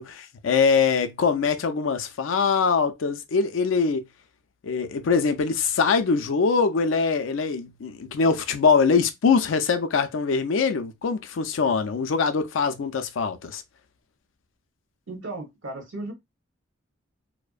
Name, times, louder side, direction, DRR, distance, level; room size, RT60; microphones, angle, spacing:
voice 1, 0.0-4.0 4.6-13.6, left 5 dB, 85° left, 0.4 m, -23 dB
voice 2, 15.1-16.1, right 2 dB, 75° right, 1.1 m, -35 dB
2.5 x 2.0 x 2.3 m
head